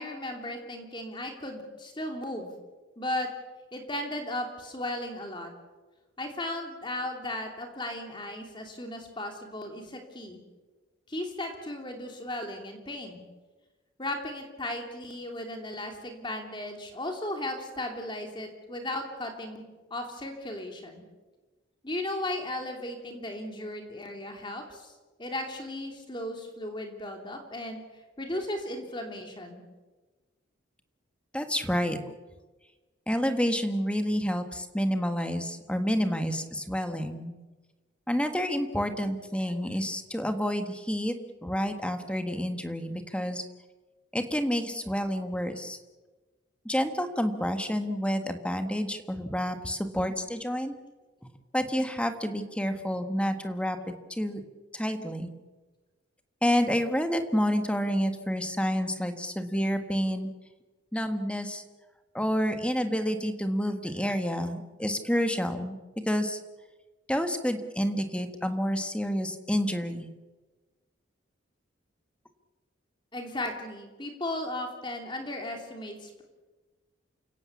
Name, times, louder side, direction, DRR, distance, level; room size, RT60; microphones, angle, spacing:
voice 1, 0.0-2.5 3.0-3.3 3.7-5.5 6.2-10.4 11.1-13.2 14.0-19.6 19.9-21.0 21.8-24.9 25.2-27.8 28.2-29.6 73.1-76.2, left 1 dB, 25° left, 3 dB, 2.9 m, -36 dB
voice 2, 31.3-32.0 33.1-37.3 38.1-41.1 41.4-43.4 44.1-45.8 46.6-50.7 51.5-53.8 54.1-54.4 54.7-55.3 56.4-60.3 60.9-61.6 62.1-65.8 66.0-66.4 67.1-70.1, equal, 5° left, 7 dB, 1.6 m, -29 dB
29.0 x 17.0 x 7.2 m, 1.2 s
head